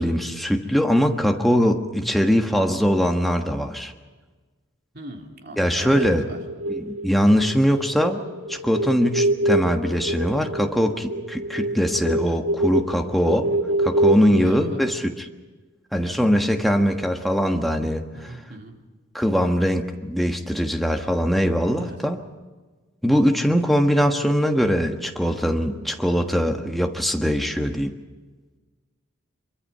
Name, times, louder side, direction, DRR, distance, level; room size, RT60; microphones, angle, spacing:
voice 1, 0.0-3.9 5.6-6.3 6.7-8.2 8.5-13.5 13.8-15.3 15.9-18.4 19.1-22.2 23.0-28.0, equal, ahead, 3 dB, 1.4 m, -21 dB
voice 2, 4.9-6.4 14.3-14.8 16.0-16.2 18.1-18.7 21.8-22.0, right 1 dB, 50° right, 1 dB, 3.3 m, -37 dB
sound 1, 5.9-14.4, right 1 dB, 85° right, 2.2 m, -25 dB
25.0 x 23.5 x 5.6 m, 1.3 s
head